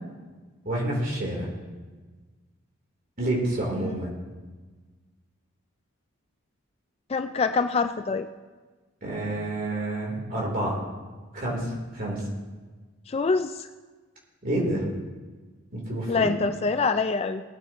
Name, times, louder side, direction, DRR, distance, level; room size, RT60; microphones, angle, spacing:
voice 1, 0.6-1.5 3.2-4.1 9.0-10.8 11.3-12.3 14.4-14.8 15.7-16.3, right 1 dB, 40° right, -3 dB, 3.4 m, -28 dB
voice 2, 7.1-8.3 13.1-13.7 16.1-17.4, left 4 dB, 30° left, 9 dB, 0.3 m, -25 dB
19.0 x 9.0 x 3.0 m, 1.3 s
head